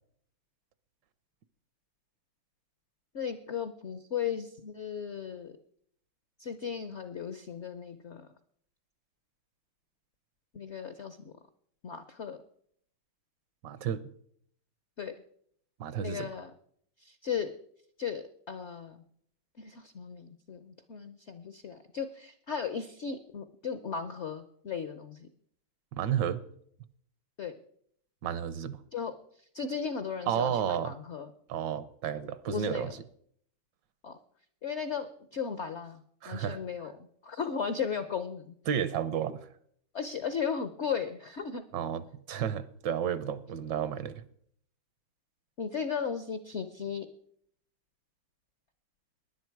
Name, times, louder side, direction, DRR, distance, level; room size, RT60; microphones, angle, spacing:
voice 1, 3.1-5.6 6.4-8.3 10.5-11.3 11.8-12.4 15.0-15.1 16.0-16.5 17.0-17.5 18.0-19.0 19.6-25.3 27.4-27.6 28.9-29.1 29.5-31.3 32.5-33.0 34.0-34.2 34.6-36.0 36.3-36.9 37.2-38.5 39.9-41.6 45.6-47.1, left 6 dB, 70° left, 0.6 m, -36 dB
voice 2, 13.6-14.1 15.8-16.3 25.9-26.4 28.2-28.8 30.3-31.0 31.5-33.0 36.2-36.6 38.7-39.5 41.7-44.2, right 9 dB, 70° right, 1.3 m, -32 dB
19.0 x 10.5 x 4.6 m
omnidirectional pair, 2.1 m